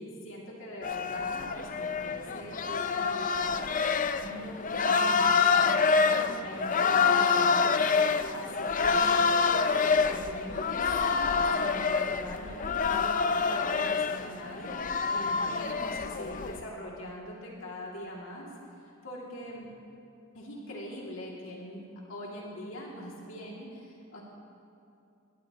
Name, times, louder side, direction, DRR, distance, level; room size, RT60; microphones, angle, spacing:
voice 1, 0.0-3.7 4.2-9.7 9.9-18.5 19.0-19.7 20.3-24.2, equal, 70° left, -4 dB, 2.7 m, -42 dB
sound 1, 0.8-16.6, left 5 dB, 40° left, 0.5 m, -27 dB
22.0 x 17.5 x 3.0 m, 2.6 s
head